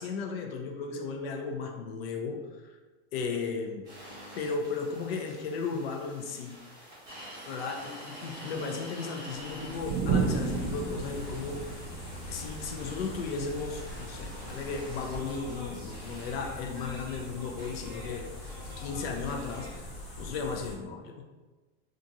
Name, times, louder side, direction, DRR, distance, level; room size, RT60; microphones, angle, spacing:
voice 1, 0.0-2.8 3.1-3.9 4.4-6.6 7.5-11.7 12.3-19.9 20.2-21.2, left 4 dB, 65° left, 3 dB, 0.5 m, -35 dB
sound 1, 3.8-19.7, equal, 10° right, 0.6 m, -47 dB
sound 2, 9.3-19.5, right 5 dB, 60° right, 0.6 m, -36 dB
sound 3, 9.7-20.7, left 1 dB, 35° left, 0.9 m, -43 dB
2.8 x 2.4 x 2.5 m, 1.2 s
supercardioid pair, 180°, 32 cm